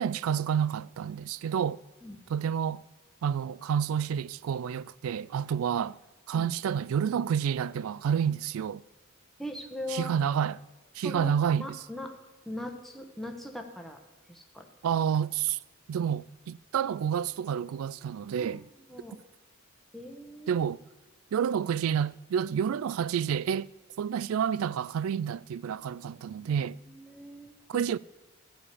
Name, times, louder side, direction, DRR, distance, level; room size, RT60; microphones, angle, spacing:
voice 1, 0.0-1.8 2.3-2.8 3.2-6.0 6.3-8.8 9.9-10.6 10.9-11.8 14.8-15.6 15.9-18.7 20.5-20.8 21.3-23.7 24.0-26.8 27.7-28.0, right 8 dB, 85° right, 0.3 m, -29 dB
voice 2, 9.4-10.1 11.0-12.1 12.5-14.0 14.3-14.7 18.4-19.2 19.9-20.6 26.4-27.9, left 1 dB, ahead, 1.1 m, -41 dB
12.5 x 5.1 x 8.3 m
head